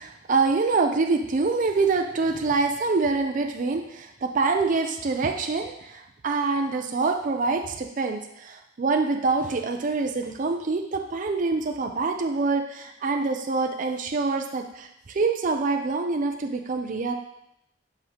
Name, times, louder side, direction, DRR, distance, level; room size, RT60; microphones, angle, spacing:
voice 1, 0.0-17.1, right 4 dB, 45° right, 4 dB, 0.4 m, -25 dB
7.3 x 4.8 x 2.9 m, 0.80 s
head